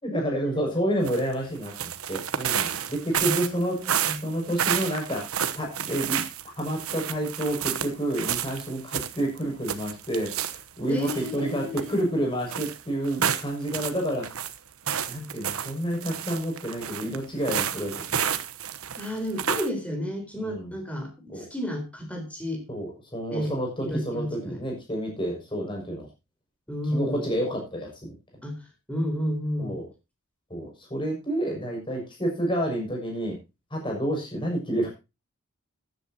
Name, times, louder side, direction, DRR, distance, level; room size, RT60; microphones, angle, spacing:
voice 1, 0.0-3.8 4.2-5.2 5.5-6.2 6.6-14.3 15.0-18.2 20.4-20.7 21.3-21.4 22.7-26.1 26.9-28.1 29.6-29.9 30.5-33.4 33.7-34.9, right 1 dB, 20° left, 0 dB, 6.4 m, -29 dB
sound 1, 1.0-1.3 1.6-10.6 11.0-12.0 12.5-14.6 14.9-19.7, right 9 dB, 80° right, 1.1 m, -30 dB
voice 2, 3.2-4.2 10.9-11.9 19.0-22.6 23.3-23.5 23.8-24.6 26.7-27.3 28.4-29.8, equal, 5° left, 3 dB, 4.0 m, -32 dB
15.0 x 10.5 x 2.9 m, 0.26 s
head